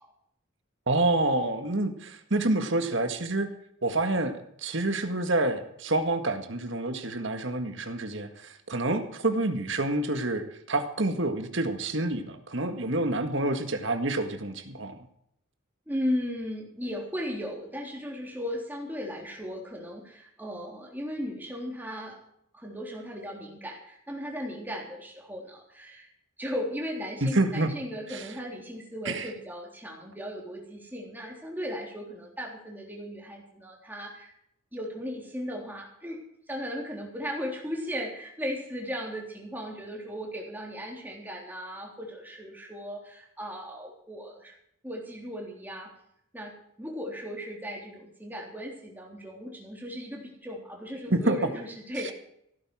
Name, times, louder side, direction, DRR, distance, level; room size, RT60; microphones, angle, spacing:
voice 1, 0.9-3.5 3.8-14.9 27.2-27.7 28.1-28.3 29.1-29.3 51.1-51.4, right 2 dB, 60° right, 7 dB, 1.9 m, -28 dB
voice 2, 15.9-22.2 22.5-26.1 26.4-34.3 34.7-36.2 36.5-44.5 44.8-45.9 46.3-46.5 46.8-52.1, equal, 10° right, -1 dB, 3.5 m, -36 dB
16.5 x 9.3 x 6.2 m, 0.73 s
head